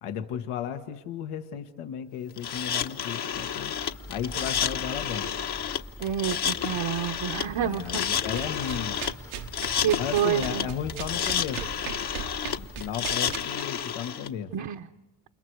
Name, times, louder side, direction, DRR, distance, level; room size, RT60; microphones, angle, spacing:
voice 1, 0.0-3.8 4.1-5.3 7.4-9.0 10.0-11.7 12.6-14.5, left 9 dB, 90° left, 6 dB, 1.7 m, -34 dB
sound 1, 2.4-14.3, left 8 dB, 55° left, 1.3 m, -30 dB
sound 2, 3.3-12.9, left 1 dB, 5° left, 0.8 m, -45 dB
voice 2, 6.0-8.2 9.8-10.7 14.5-14.8, right 10 dB, 55° right, 5 dB, 1.0 m, -28 dB
sound 3, 7.0-7.1 8.2-13.6, right 11 dB, 80° right, 1.2 m, -39 dB
29.0 x 28.5 x 4.8 m, 1.1 s
cardioid pair, 85°, 49 cm